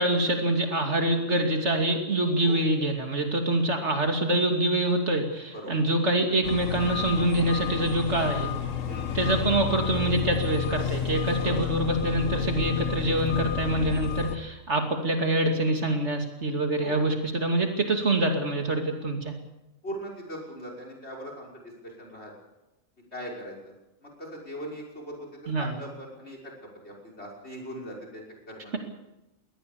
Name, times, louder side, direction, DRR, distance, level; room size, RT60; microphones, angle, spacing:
voice 1, 0.0-8.5 9.1-19.3 25.5-25.7, right 1 dB, 60° right, 3 dB, 2.9 m, -25 dB
sound 1, 6.4-14.4, left 8 dB, 80° left, 1.7 m, -31 dB
voice 2, 8.9-9.2 11.4-11.6 16.8-17.1 19.8-21.5 21.8-22.3 23.1-23.7 24.0-25.3 25.6-26.5 26.8-28.7, equal, 55° left, 0 dB, 6.2 m, -40 dB
22.0 x 18.0 x 7.1 m, 0.98 s
omnidirectional pair, 1.3 m